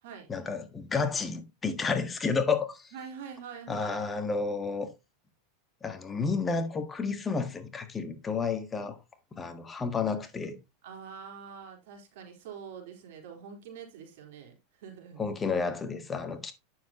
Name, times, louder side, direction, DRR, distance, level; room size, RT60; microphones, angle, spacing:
voice 1, 0.3-2.9 3.7-4.9 5.8-9.0 9.3-10.6 15.2-16.5, left 4 dB, 20° left, 1.5 m, -31 dB
voice 2, 2.9-4.0 10.8-15.2, right 7 dB, 65° right, 4.0 m, -45 dB
9.3 x 7.1 x 3.0 m
hypercardioid pair, 120°, 0 cm